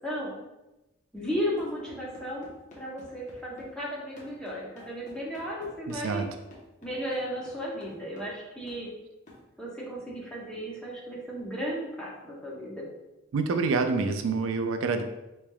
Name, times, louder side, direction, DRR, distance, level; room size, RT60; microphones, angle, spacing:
voice 1, 1.1-2.5 2.8-6.2 6.8-8.9 9.6-12.8, equal, 5° left, -5 dB, 0.8 m, -34 dB
sound 1, 1.3-3.7 4.2-8.4 8.7-8.9 9.3-9.4, left 2 dB, 40° left, 0.9 m, -51 dB
voice 2, 5.9-6.3 13.3-15.0, right 4 dB, 90° right, 7 dB, 0.4 m, -27 dB
3.9 x 3.2 x 2.3 m, 0.98 s
head